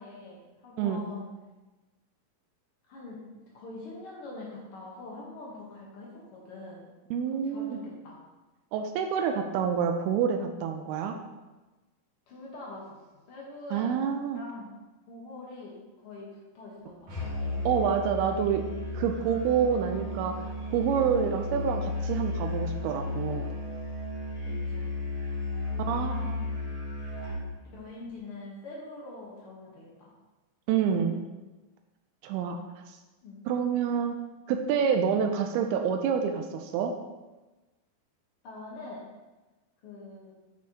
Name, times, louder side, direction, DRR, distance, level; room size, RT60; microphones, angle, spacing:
voice 1, 0.0-1.3 2.9-6.9 7.3-8.2 12.3-14.0 14.3-14.8 15.1-17.7 24.4-24.9 25.7-26.4 27.7-30.1 33.2-33.4 38.4-39.0 39.8-40.3, left 2 dB, 90° left, -4 dB, 1.2 m, -44 dB
voice 2, 7.1-7.8 8.7-11.2 13.7-14.4 17.7-18.6 18.9-20.3 20.7-23.5 25.9-26.2 30.7-31.2 32.2-32.6 33.5-34.2 34.5-36.9, right 7 dB, 90° right, 4 dB, 2.6 m, -27 dB
Musical instrument, 17.1-27.5, left 2 dB, 60° right, 4.2 m, -34 dB
8.9 x 6.2 x 2.9 m, 1.1 s
omnidirectional pair, 4.5 m